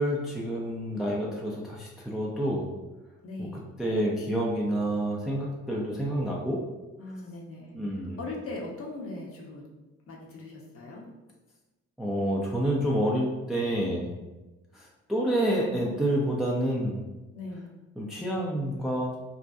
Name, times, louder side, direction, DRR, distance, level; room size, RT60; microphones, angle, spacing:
voice 1, 0.0-2.7 3.4-6.6 7.7-8.2 12.0-14.1 14.7-17.0 18.0-19.2, right 1 dB, ahead, -3 dB, 0.4 m, -28 dB
voice 2, 3.2-3.6 7.0-7.7 8.2-9.6 10.1-11.0 17.3-17.7, left 2 dB, 40° left, -2 dB, 0.7 m, -39 dB
2.6 x 2.2 x 2.2 m, 1.1 s
supercardioid pair, 55°, 34 cm